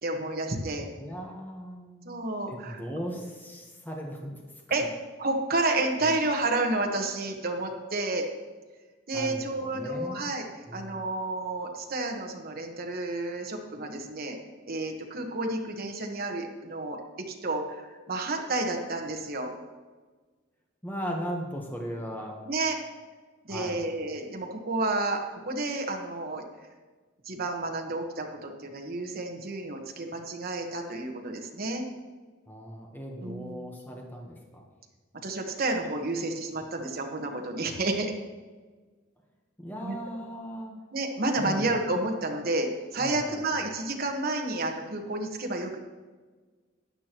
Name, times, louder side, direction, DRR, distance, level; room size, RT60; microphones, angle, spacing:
voice 1, 0.0-0.9 2.0-2.8 4.7-4.8 5.2-8.3 9.1-10.4 10.7-14.4 14.7-17.0 17.3-19.5 22.5-22.8 23.4-26.4 27.2-31.8 33.2-33.7 35.2-38.1 39.8-40.0 40.9-45.8, right 2 dB, 50° right, 2 dB, 1.3 m, -30 dB
voice 2, 1.0-2.1 2.5-4.4 6.0-6.1 9.1-10.2 10.6-11.0 20.8-22.4 23.5-23.8 32.5-34.6 39.6-40.7 41.4-41.8 43.0-43.7, equal, 10° left, 0 dB, 1.1 m, -38 dB
13.0 x 9.8 x 3.0 m, 1.4 s
head